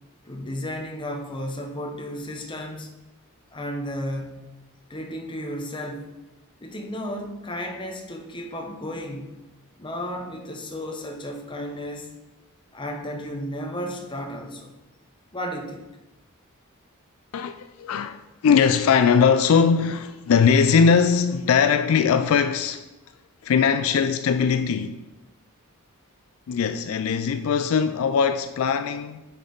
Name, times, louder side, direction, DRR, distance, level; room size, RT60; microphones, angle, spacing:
voice 1, 0.2-2.9 3.5-4.5 4.9-6.1 6.6-9.3 9.8-12.1 12.7-14.7 15.3-15.8, equal, 20° left, 0.9 m, -33 dB
voice 2, 17.3-22.9 23.4-25.0 26.5-29.3, left 6 dB, 70° left, 0.3 m, -20 dB
6.4 x 6.0 x 3.9 m
head